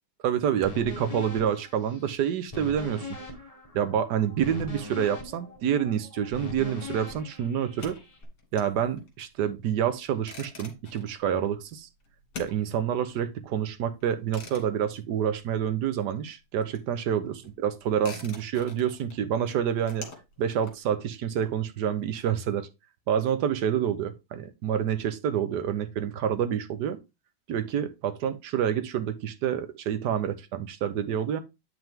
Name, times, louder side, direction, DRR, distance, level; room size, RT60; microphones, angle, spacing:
voice 1, 0.2-3.1 3.7-8.0 8.5-11.9 12.4-20.1 20.4-22.7 23.1-27.0 27.5-31.4, right 9 dB, 60° right, 1.3 m, -28 dB
sound 1, 0.6-8.2, left 3 dB, 15° left, 1.8 m, -41 dB
sound 2, 7.6-16.0 16.2-22.0, left 4 dB, 50° left, 2.5 m, -47 dB
9.0 x 5.6 x 3.6 m
omnidirectional pair, 2.4 m